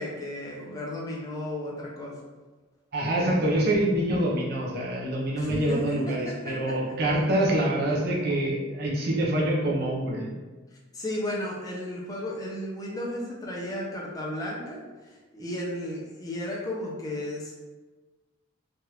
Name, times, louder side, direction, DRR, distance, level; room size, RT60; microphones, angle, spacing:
voice 1, 0.0-2.1 5.3-7.0 10.7-17.5, left 1 dB, 20° left, -4 dB, 0.6 m, -34 dB
voice 2, 2.9-10.3, right 1 dB, 50° right, -3 dB, 0.6 m, -26 dB
3.3 x 2.5 x 2.9 m, 1.2 s
head